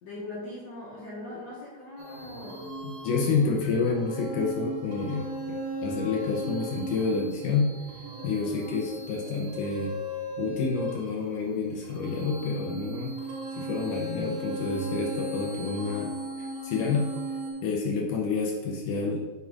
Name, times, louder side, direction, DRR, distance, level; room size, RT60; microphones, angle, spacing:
voice 1, 0.0-2.7, left 2 dB, 60° left, -7 dB, 1.8 m, -40 dB
sound 1, 2.0-17.5, equal, 80° right, 3.2 m, -37 dB
voice 2, 2.8-7.7 8.2-10.0 10.4-13.1 13.5-16.1 16.4-17.1 17.6-19.3, left 4 dB, 80° left, 0 dB, 1.9 m, -29 dB
7.8 x 6.9 x 2.4 m, 1.2 s
omnidirectional pair, 4.6 m